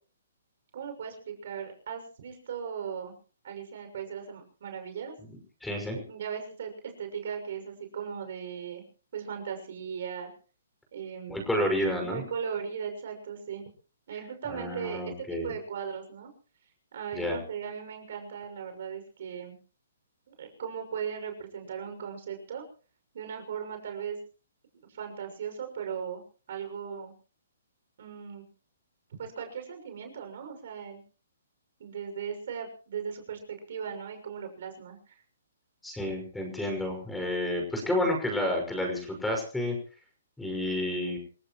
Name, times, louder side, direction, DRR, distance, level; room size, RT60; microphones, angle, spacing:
voice 1, 0.7-3.1 3.4-5.1 6.1-8.8 9.1-10.3 10.9-11.4 12.0-13.7 14.1-16.3 16.9-19.6 20.3-22.6 23.1-24.2 24.9-26.2 26.5-27.1 28.0-28.4 29.2-31.0 31.8-33.4 33.7-35.2, right 7 dB, 60° right, 5 dB, 6.4 m, -38 dB
voice 2, 5.6-6.0 11.3-12.2 14.5-15.5 17.1-17.4 35.8-39.8 40.4-41.2, left 1 dB, 5° left, 3 dB, 6.0 m, -30 dB
28.0 x 16.5 x 3.1 m, 0.40 s
hypercardioid pair, 145°, 0 cm